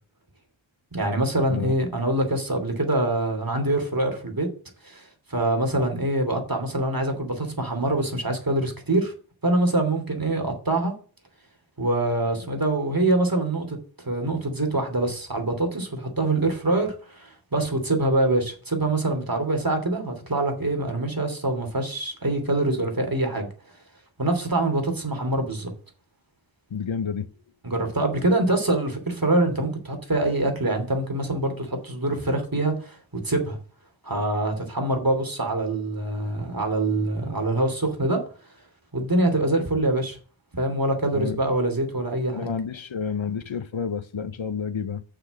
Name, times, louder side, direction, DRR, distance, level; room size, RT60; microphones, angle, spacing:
voice 1, 0.9-4.5 4.8-9.1 9.4-10.9 11.8-13.8 14.0-23.5 24.2-25.7 27.6-33.0 33.2-33.6 34.0-38.2 38.9-40.2 40.6-42.5, right 2 dB, 45° right, 2.8 m, -24 dB
voice 2, 26.7-27.3 41.1-41.4 42.3-45.0, left 6 dB, 70° left, 0.8 m, -30 dB
6.7 x 6.2 x 7.3 m
wide cardioid pair, 45°, 48 cm